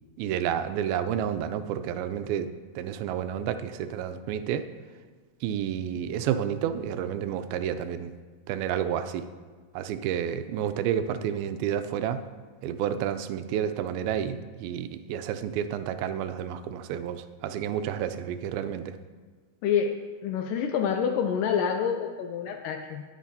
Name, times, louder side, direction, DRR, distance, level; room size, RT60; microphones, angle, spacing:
voice 1, 0.2-4.7 5.4-8.1 8.5-9.3 9.7-12.2 12.6-19.0, right 9 dB, 85° right, 10 dB, 2.4 m, -30 dB
voice 2, 19.6-23.0, left 7 dB, 80° left, 5 dB, 2.0 m, -27 dB
19.0 x 6.4 x 2.7 m, 1.5 s
omnidirectional pair, 4.3 m